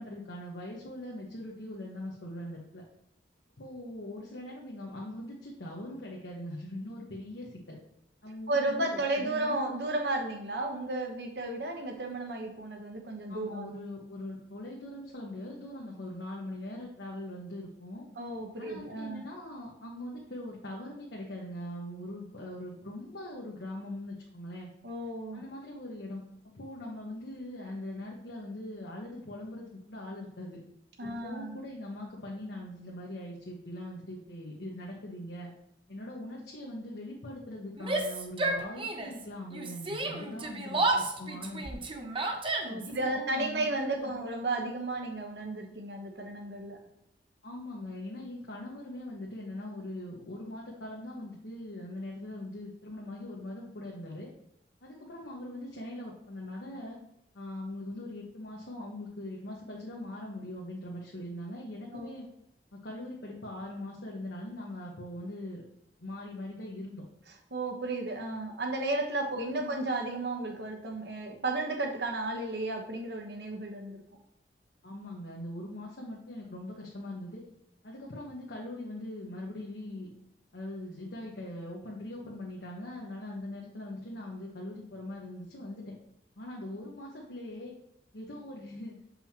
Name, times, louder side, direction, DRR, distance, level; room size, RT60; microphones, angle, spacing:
voice 1, 0.0-2.8 3.6-7.8 8.2-9.7 13.3-18.1 18.6-24.7 25.3-26.2 26.5-30.6 31.0-35.5 35.9-41.8 42.8-44.1 47.4-54.3 54.8-57.0 57.3-62.3 62.7-65.6 66.0-67.0 69.4-69.7 74.8-77.4 77.8-80.1 80.5-85.9 86.4-87.8 88.1-89.0, left 1 dB, 80° left, -3 dB, 1.2 m, -41 dB
voice 2, 8.5-13.7 18.2-19.2 24.8-25.4 31.0-31.6 42.6-46.8 61.9-62.1 67.5-74.0, right 2 dB, 65° right, 4 dB, 1.1 m, -33 dB
Yell, 37.8-39.2 39.5-43.0, right 2 dB, 30° right, 0.7 m, -31 dB
7.3 x 5.5 x 2.9 m, 0.81 s
head